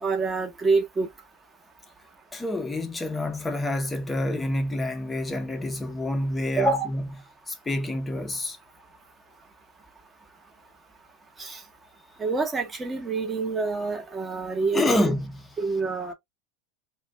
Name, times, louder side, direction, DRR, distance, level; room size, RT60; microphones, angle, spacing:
voice 1, 0.0-1.1 6.6-6.9 11.4-11.6 12.2-15.0 15.6-16.1, right 4 dB, 15° right, 0.9 m, -26 dB
voice 2, 2.3-7.1 7.5-8.6 14.7-15.4, left 1 dB, 10° left, 0.7 m, -27 dB
2.4 x 2.2 x 3.2 m
supercardioid pair, 130°, 0 cm